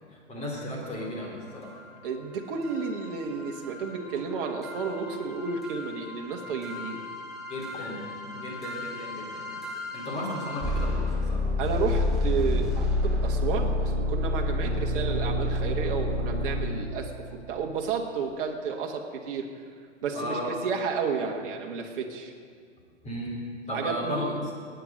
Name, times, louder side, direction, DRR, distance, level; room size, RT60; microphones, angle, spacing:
voice 1, 0.1-1.8 7.5-9.6 9.9-11.4 20.1-20.5 23.0-23.4 23.7-24.3, equal, 20° left, -2 dB, 3.8 m, -35 dB
sound 1, 0.9-1.0 1.7-1.8 2.1-2.2 2.6-17.1, left 1 dB, ahead, 2.3 m, -30 dB
voice 2, 2.0-7.0 11.6-19.5 20.0-22.3 23.7-24.4, right 5 dB, 45° right, 1 dB, 1.5 m, -32 dB
19.0 x 9.3 x 5.2 m, 2.1 s
figure-of-eight pair, 110°, 36 cm